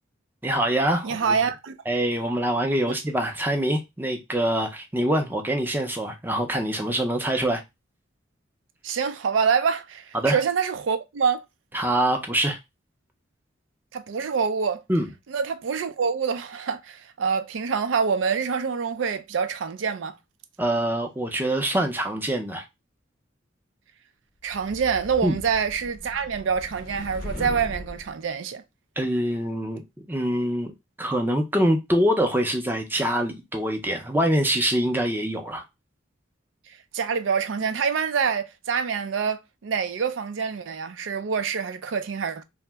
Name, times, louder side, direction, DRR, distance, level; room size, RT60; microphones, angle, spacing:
voice 1, 0.4-1.4 1.9-7.6 10.1-10.4 11.7-12.6 14.9-15.1 20.6-22.6 25.2-25.4 29.0-30.7 31.0-35.6, right 1 dB, 10° right, 0.4 m, -24 dB
voice 2, 1.0-1.7 8.8-11.4 13.9-14.8 15.3-20.1 24.4-28.6 36.9-42.4, right 6 dB, 80° right, 0.4 m, -26 dB
sound 1, 24.5-28.1, left 1 dB, 45° left, 0.5 m, -39 dB
2.8 x 2.1 x 3.3 m
head